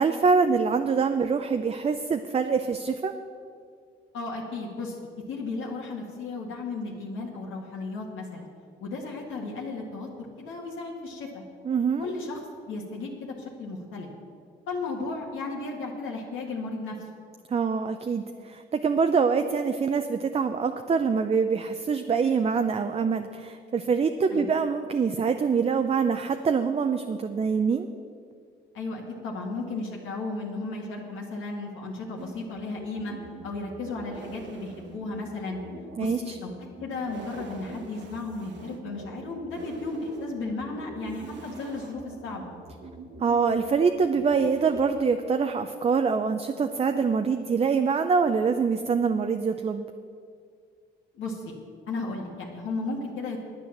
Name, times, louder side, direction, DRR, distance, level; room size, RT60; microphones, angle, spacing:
voice 1, 0.0-3.1 11.6-12.1 17.5-27.9 36.0-36.4 43.2-49.9, right 5 dB, 30° right, 7 dB, 0.6 m, -25 dB
voice 2, 4.1-5.0 5.3-8.5 8.8-11.4 12.0-12.4 12.7-14.1 14.7-17.0 24.3-24.5 28.7-33.1 33.4-35.6 36.0-36.5 36.8-42.5 51.1-51.5 51.9-53.4, left 3 dB, 85° left, -2 dB, 1.8 m, -34 dB
sound 1, 32.2-44.9, right 3 dB, 65° right, 1.4 m, -44 dB
9.7 x 9.2 x 7.2 m, 2.2 s
cardioid pair, 90°, 20 cm